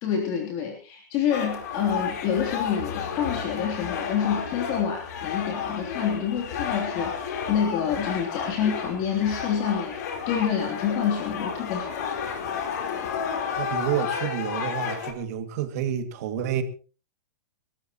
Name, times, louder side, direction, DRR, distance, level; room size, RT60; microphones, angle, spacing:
voice 1, 0.0-10.0 10.3-12.2, left 8 dB, 40° left, 3.3 m, -27 dB
sound 1, 1.3-15.1, left 7 dB, 60° left, 4.0 m, -32 dB
voice 2, 13.6-16.6, right 10 dB, 55° right, 2.3 m, -29 dB
28.0 x 13.5 x 3.0 m
hypercardioid pair, 145°, 10 cm